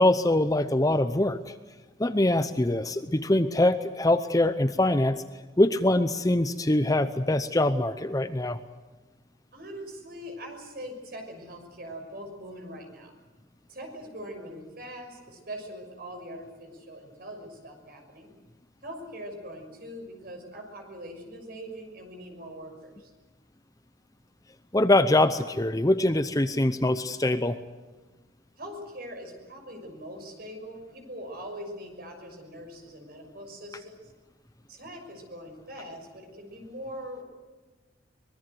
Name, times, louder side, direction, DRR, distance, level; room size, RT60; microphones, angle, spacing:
voice 1, 0.0-1.5 2.0-5.2 5.6-8.6 24.7-27.6, left 1 dB, 20° left, 11 dB, 0.7 m, -23 dB
voice 2, 9.5-13.1 13.7-18.3 18.8-23.1 28.6-34.1 34.7-37.2, equal, 50° right, 4 dB, 6.3 m, -42 dB
25.0 x 20.5 x 8.0 m, 1.2 s
head